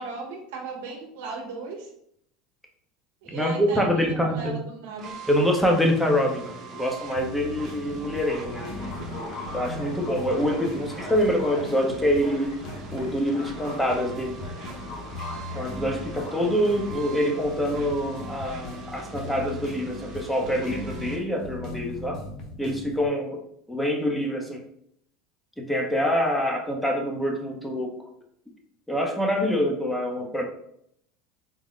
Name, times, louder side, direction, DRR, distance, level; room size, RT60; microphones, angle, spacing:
voice 1, 0.0-1.9 3.2-5.1, right 4 dB, 80° right, 1 dB, 0.8 m, -37 dB
voice 2, 3.3-4.6 5.3-8.7 9.5-12.5 12.9-14.3 15.5-22.2 22.6-23.4 23.7-24.6 25.6-27.9 28.9-30.4, equal, 5° left, 1 dB, 0.7 m, -25 dB
sound 1, 5.0-21.2, right 5 dB, 40° right, 0.9 m, -42 dB
sound 2, 7.1-23.1, left 2 dB, 50° left, 0.8 m, -39 dB
sound 3, 8.3-22.1, left 2 dB, 65° left, 1.2 m, -42 dB
3.7 x 2.1 x 3.7 m, 0.72 s
supercardioid pair, 120°, 0 cm